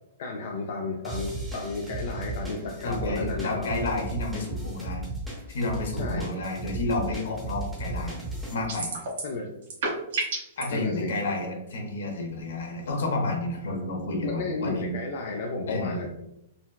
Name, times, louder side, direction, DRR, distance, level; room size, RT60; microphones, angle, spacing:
voice 1, 0.2-3.6 6.0-6.3 9.2-9.5 10.7-11.2 14.2-16.1, left 3 dB, 50° left, 0 dB, 0.4 m, -32 dB
sound 1, 1.0-8.5, right 2 dB, 5° right, 0.6 m, -35 dB
voice 2, 2.8-5.0 5.5-8.2 8.5-8.9 10.6-14.9 15.7-16.0, left 2 dB, 80° left, 1 dB, 0.9 m, -30 dB
sound 2, 8.7-9.4 9.6-10.6, right 3 dB, 65° right, 1.3 m, -30 dB
3.9 x 2.2 x 2.3 m, 0.83 s
hypercardioid pair, 170°, 0 cm